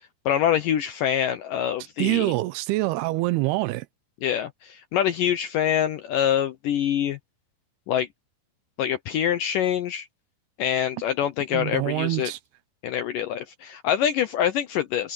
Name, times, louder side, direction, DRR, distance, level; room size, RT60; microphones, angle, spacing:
voice 1, 0.3-2.3 4.2-7.2 7.9-8.1 8.8-10.1 10.6-12.3 12.8-15.1, left 10 dB, 80° left, 2.0 m, -25 dB
voice 2, 2.0-3.9 11.5-12.4, right 20 dB, 80° right, 2.4 m, -25 dB
omnidirectional pair, 4.8 m